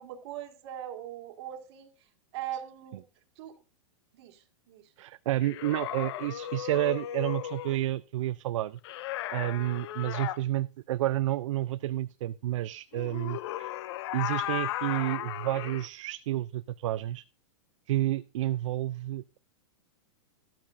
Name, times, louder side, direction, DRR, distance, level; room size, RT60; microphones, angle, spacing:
voice 1, 0.0-1.9 2.3-3.0 3.4-3.5 4.1-4.9, right 11 dB, 55° right, 6 dB, 1.9 m, -40 dB
voice 2, 5.0-8.8 9.3-13.7 14.1-17.2 17.9-19.4, right 14 dB, 70° right, 14 dB, 0.4 m, -30 dB
sound 1, 5.4-7.8 8.8-10.4 12.9-15.9, left 13 dB, 55° left, 0.5 m, -35 dB
13.0 x 12.5 x 2.5 m, 0.31 s
supercardioid pair, 150°, 17 cm